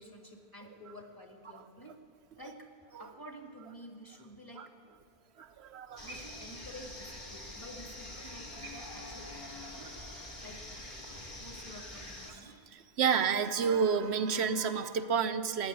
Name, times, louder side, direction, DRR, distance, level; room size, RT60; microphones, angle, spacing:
voice 1, 0.0-2.0 2.3-2.7 3.0-4.7 6.0-9.9 10.4-10.7 11.4-12.5, equal, 20° left, 2 dB, 1.9 m, -50 dB
voice 2, 5.4-6.1 13.0-15.7, right 6 dB, 90° right, 9 dB, 1.0 m, -29 dB
sound 1, 6.0-12.3, left 1 dB, 45° left, 2.4 m, -45 dB
15.5 x 9.8 x 9.4 m, 2.5 s
omnidirectional pair, 1.1 m